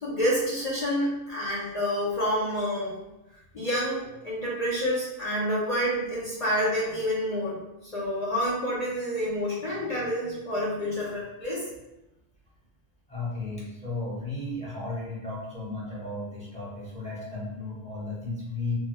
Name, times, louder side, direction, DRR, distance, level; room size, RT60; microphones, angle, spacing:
voice 1, 0.0-2.9 3.5-7.6 7.9-11.7, equal, 45° left, -7 dB, 0.6 m, -28 dB
voice 2, 13.1-18.7, left 2 dB, 5° left, -7 dB, 0.9 m, -34 dB
3.2 x 3.1 x 2.2 m, 0.96 s
omnidirectional pair, 1.1 m